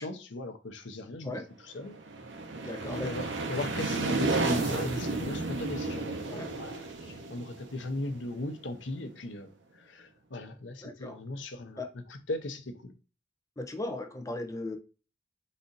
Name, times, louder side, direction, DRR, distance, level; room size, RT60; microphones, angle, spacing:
voice 1, 0.0-2.0 2.6-12.9, left 2 dB, 85° left, 0.8 m, -38 dB
sound 1, 1.9-8.6, right 3 dB, 75° right, 0.8 m, -32 dB
voice 2, 2.6-3.1 6.3-6.5 10.8-11.2 11.8-11.9 13.6-14.8, left 2 dB, 20° left, 0.5 m, -37 dB
4.1 x 2.6 x 3.8 m
head